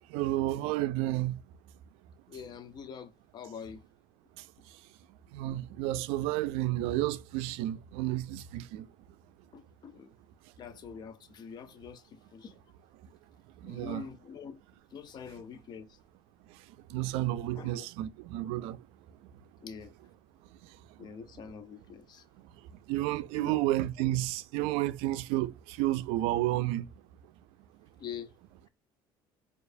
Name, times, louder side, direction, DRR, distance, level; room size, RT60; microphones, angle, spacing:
voice 1, 0.1-1.4 5.3-8.9 13.6-14.1 16.9-18.8 22.9-26.9, right 15 dB, 80° right, 0.4 m, -31 dB
voice 2, 2.3-3.8 9.5-10.1 10.6-12.6 13.6-14.6 14.9-16.0 17.5-17.9 19.6-19.9 21.0-22.2 23.4-23.6 28.0-28.3, left 7 dB, 45° left, 0.6 m, -45 dB
4.6 x 2.5 x 2.5 m
supercardioid pair, 100°, 10 cm